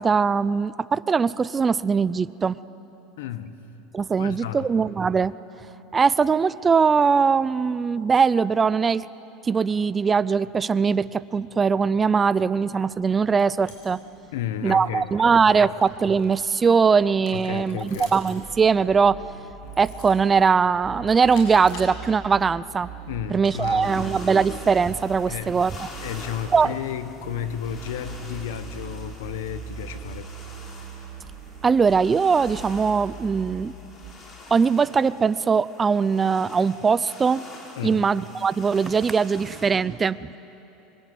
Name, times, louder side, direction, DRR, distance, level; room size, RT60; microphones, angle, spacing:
voice 1, 0.0-2.6 3.9-5.4 5.9-9.1 9.4-14.0 14.6-19.2 19.8-22.9 23.3-25.9 26.5-26.7 31.6-33.7 34.5-37.4 37.8-40.3, right 5 dB, 20° right, 18 dB, 0.5 m, -21 dB
voice 2, 3.2-3.6 4.2-4.7 14.3-15.1 15.6-15.7 17.3-18.1 23.1-24.2 25.3-25.5 26.0-30.3 37.8-38.1, left 10 dB, 85° left, 12 dB, 1.4 m, -32 dB
sound 1, 12.7-28.1, left 3 dB, 65° left, 7.9 m, -48 dB
sound 2, 18.4-20.2 20.8-23.3 23.6-26.7 27.2-33.6 34.0-34.1, right 8 dB, 60° right, 3.0 m, -40 dB
sound 3, 23.8-39.7, left 2 dB, 30° left, 4.8 m, -46 dB
25.5 x 25.0 x 9.4 m, 3.0 s
supercardioid pair, 125°, 0 cm